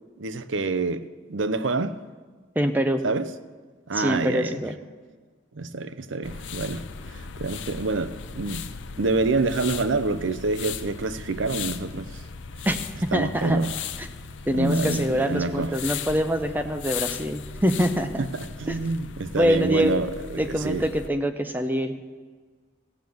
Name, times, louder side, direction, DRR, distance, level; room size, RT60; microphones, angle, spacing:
voice 1, 0.2-2.0 3.0-3.3 3.9-4.6 5.5-8.7 9.0-12.2 13.1-13.7 14.5-15.9 18.2-20.8, right 3 dB, 80° right, 0.7 m, -27 dB
voice 2, 2.6-3.0 3.9-4.7 12.6-13.6 14.0-14.1 14.5-18.2 18.7-18.8 19.3-20.0 20.4-22.0, equal, 10° right, 0.6 m, -24 dB
sound 1, 6.2-21.1, left 6 dB, 80° left, 0.6 m, -37 dB
16.0 x 7.0 x 7.8 m
head